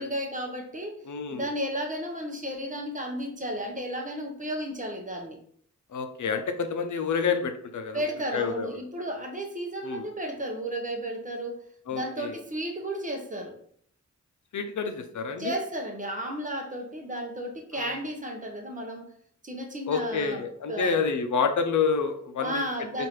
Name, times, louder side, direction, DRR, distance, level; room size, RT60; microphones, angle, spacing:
voice 1, 0.0-1.0 1.3-5.4 7.9-11.6 11.9-13.6 15.4-19.1 19.4-20.4 20.7-21.0 22.4-23.1, right 1 dB, 25° right, 2 dB, 0.7 m, -33 dB
voice 2, 1.0-1.5 5.9-8.0 8.3-8.8 9.8-10.1 11.9-12.4 14.5-15.5 17.7-17.9 19.9-22.6 23.0-23.1, left 5 dB, 80° left, 6 dB, 0.6 m, -28 dB
4.7 x 2.5 x 3.0 m, 0.64 s
wide cardioid pair, 120°, 29 cm